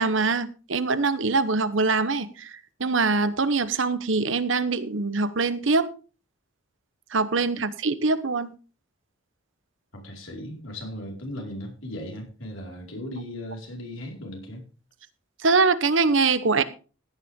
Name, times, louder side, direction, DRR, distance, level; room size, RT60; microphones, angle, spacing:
voice 1, 0.0-5.9 7.1-8.5 15.4-16.6, right 4 dB, 70° right, 1.0 m, -23 dB
voice 2, 9.9-14.6, left 1 dB, 80° left, 4.9 m, -37 dB
16.0 x 9.9 x 3.7 m
head